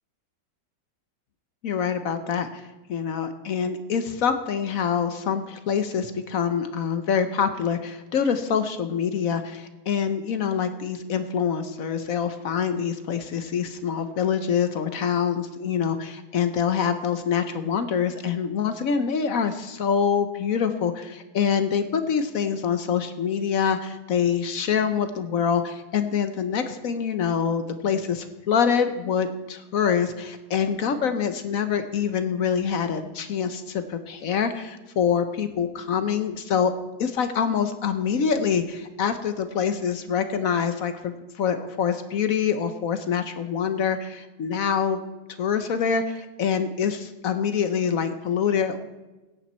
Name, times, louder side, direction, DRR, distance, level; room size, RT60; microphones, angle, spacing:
voice 1, 1.6-36.7 37.0-45.0 45.4-48.8, left 7 dB, 60° left, 10 dB, 1.1 m, -25 dB
16.0 x 9.0 x 4.3 m, 1.1 s
omnidirectional pair, 1.9 m